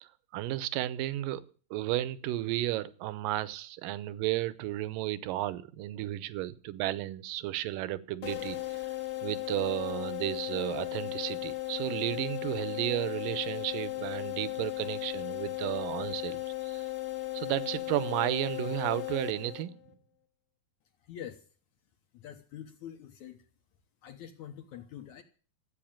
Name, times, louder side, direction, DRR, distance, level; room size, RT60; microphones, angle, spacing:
voice 1, 0.0-1.4 1.7-8.8 9.2-16.9 17.3-19.8, right 15 dB, 75° right, 2.3 m, -33 dB
sound 1, 8.2-19.9, left 19 dB, 45° left, 1.9 m, -36 dB
voice 2, 21.0-21.5 22.1-23.5 24.0-25.2, left 10 dB, 70° left, 2.1 m, -45 dB
14.0 x 8.5 x 8.8 m
omnidirectional pair, 4.3 m